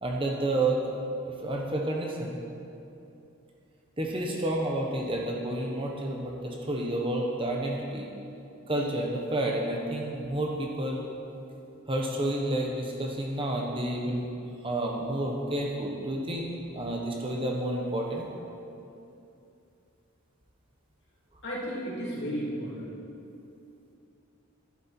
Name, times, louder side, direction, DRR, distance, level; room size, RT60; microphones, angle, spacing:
voice 1, 0.0-0.9 1.2-2.4 4.0-8.1 8.7-11.0 11.9-14.3 14.6-16.5 16.7-18.3, right 1 dB, 25° right, -1 dB, 1.0 m, -30 dB
voice 2, 21.4-22.9, equal, 50° left, -7 dB, 3.1 m, -33 dB
12.0 x 11.5 x 4.4 m, 2.7 s
head